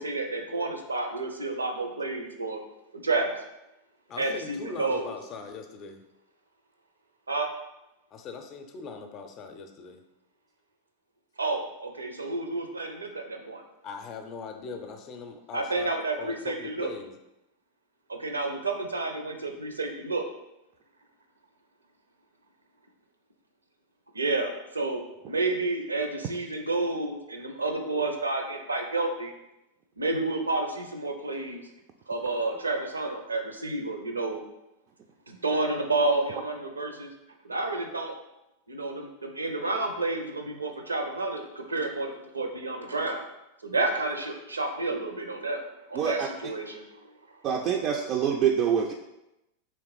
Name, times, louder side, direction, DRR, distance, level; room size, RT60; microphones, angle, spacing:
voice 1, 0.0-2.6 2.9-3.3 4.2-5.1 7.3-7.5 11.4-13.6 15.5-16.9 18.1-20.2 24.1-29.3 30.0-31.6 32.1-34.4 35.3-37.1 37.5-38.1 38.7-43.3 43.6-45.6 45.9-46.8, right 2 dB, 75° right, 4 dB, 0.6 m, -30 dB
voice 2, 4.1-6.0 8.1-10.0 13.8-17.1, left 5 dB, 35° left, 6 dB, 0.5 m, -40 dB
voice 3, 45.9-46.3 47.4-48.9, right 8 dB, 35° right, 2 dB, 0.3 m, -25 dB
3.4 x 3.1 x 4.8 m, 0.92 s
figure-of-eight pair, 90°, 0 cm